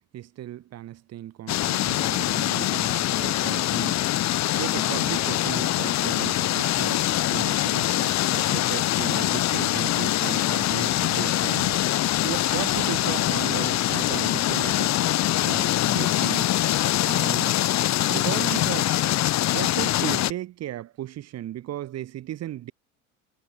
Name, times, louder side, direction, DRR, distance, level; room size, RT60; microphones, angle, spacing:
voice 1, 0.1-4.1 4.5-11.8 12.2-15.0 15.4-16.6 17.0-17.6 18.1-19.0 19.5-22.7, right 13 dB, 35° right, 2.1 m, -35 dB
sound 1, 1.5-20.3, left 14 dB, 40° left, 2.7 m, -24 dB
figure-of-eight pair, 70°, 42 cm